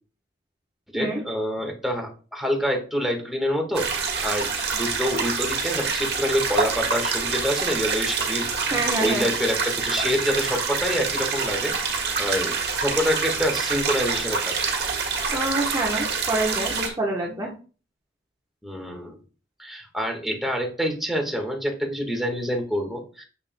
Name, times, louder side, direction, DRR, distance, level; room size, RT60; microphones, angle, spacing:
voice 1, 0.9-12.5 12.8-14.6 18.6-19.1 19.6-23.2, equal, ahead, 1 dB, 1.4 m, -27 dB
sound 1, 3.7-16.9, right 5 dB, 50° right, 1.6 m, -26 dB
voice 2, 8.7-9.3 15.3-17.5, right 1 dB, 20° right, -3 dB, 1.0 m, -26 dB
7.0 x 6.5 x 2.2 m, 0.37 s
head